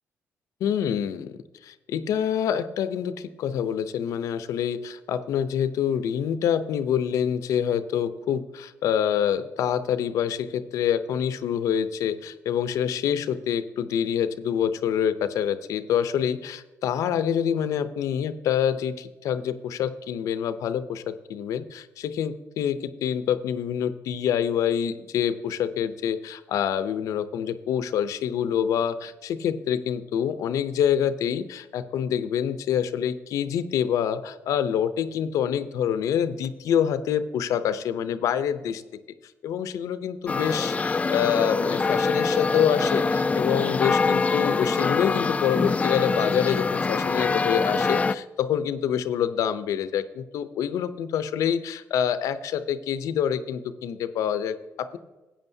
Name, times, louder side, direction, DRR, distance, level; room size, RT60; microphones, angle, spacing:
voice 1, 0.6-38.8 39.4-55.0, left 9 dB, 80° left, 12 dB, 0.6 m, -26 dB
sound 1, 40.3-48.2, left 4 dB, 25° left, 0.3 m, -24 dB
14.5 x 8.6 x 2.7 m, 1.2 s
cardioid pair, 80°, 6 cm